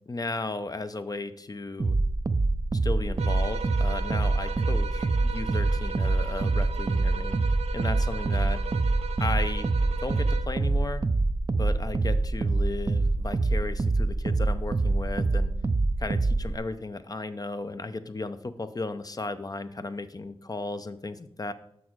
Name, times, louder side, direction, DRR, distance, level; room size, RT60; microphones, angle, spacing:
voice 1, 0.1-2.0 2.8-7.4 7.7-8.6 9.2-9.7 10.0-11.0 11.6-15.5 16.0-21.5, left 3 dB, 35° left, 11 dB, 0.6 m, -35 dB
sound 1, 1.8-16.6, right 3 dB, 35° right, 0.5 m, -25 dB
sound 2, 3.2-10.6, right 6 dB, 85° right, 0.5 m, -38 dB
6.2 x 6.2 x 4.6 m, 0.71 s
cardioid pair, 40°, 10 cm